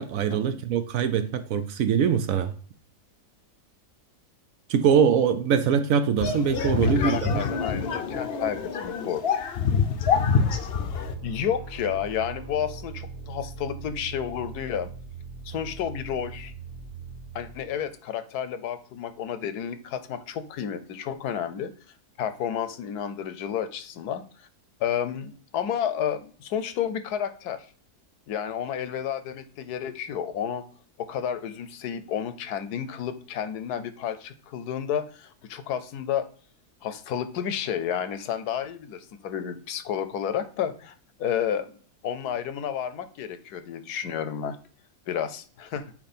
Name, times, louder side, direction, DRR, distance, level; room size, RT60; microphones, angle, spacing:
voice 1, 0.0-2.5 4.7-7.4, right 7 dB, 70° right, 0.9 m, -23 dB
sound 1, 6.2-11.2, left 6 dB, 55° left, 0.7 m, -26 dB
voice 2, 6.8-9.2 11.2-14.9 15.4-16.5 17.3-21.7 22.2-24.5 24.8-27.7 28.3-30.6 31.0-36.3 36.8-40.9 41.2-41.7 42.0-44.6 45.1-45.9, left 9 dB, 80° left, 1.2 m, -31 dB
sound 2, 10.5-17.9, right 5 dB, 85° right, 2.0 m, -41 dB
8.7 x 3.0 x 4.2 m
omnidirectional pair, 1.7 m